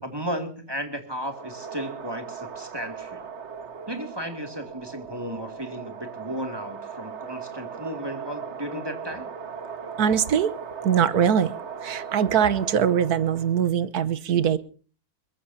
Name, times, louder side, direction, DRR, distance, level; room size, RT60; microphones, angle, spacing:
voice 1, 0.0-3.3 3.9-9.3, equal, 15° right, 5 dB, 2.4 m, -34 dB
sound 1, 1.2-13.6, right 6 dB, 50° right, 1.4 m, -38 dB
voice 2, 10.0-10.5 10.8-11.5 11.8-14.6, right 8 dB, 85° right, 15 dB, 1.5 m, -22 dB
23.0 x 22.0 x 2.8 m, 0.40 s
omnidirectional pair, 1.6 m